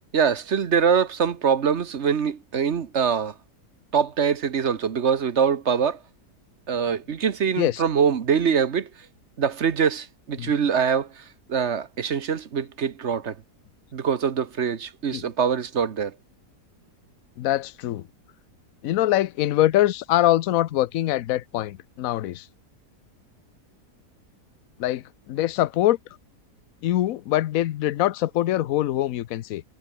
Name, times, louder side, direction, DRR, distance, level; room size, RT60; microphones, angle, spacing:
voice 1, 0.1-3.3 3.9-6.0 6.7-8.9 9.4-11.2 11.5-13.3 13.9-16.1, right 7 dB, 50° right, 1.2 m, -23 dB
voice 2, 17.4-18.1 18.8-22.5 24.8-26.0 26.8-29.6, left 14 dB, 65° left, 1.0 m, -23 dB
omnidirectional pair, 1.7 m